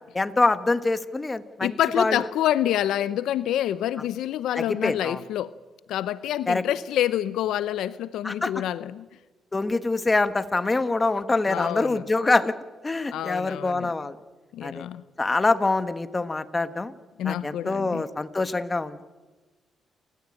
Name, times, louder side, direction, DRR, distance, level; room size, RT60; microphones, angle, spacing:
voice 1, 0.1-2.2 4.5-5.2 6.5-6.6 8.2-8.5 9.5-12.5 12.8-14.2 14.6-14.8 15.2-16.9 17.2-19.0, left 3 dB, 20° left, 11 dB, 1.4 m, -25 dB
voice 2, 1.6-5.5 5.9-9.1 11.5-12.0 13.1-13.9 14.5-15.0 17.2-18.0, left 12 dB, 80° left, 16 dB, 0.6 m, -27 dB
29.0 x 14.0 x 8.8 m, 1.2 s
cardioid pair, 90°, 0 cm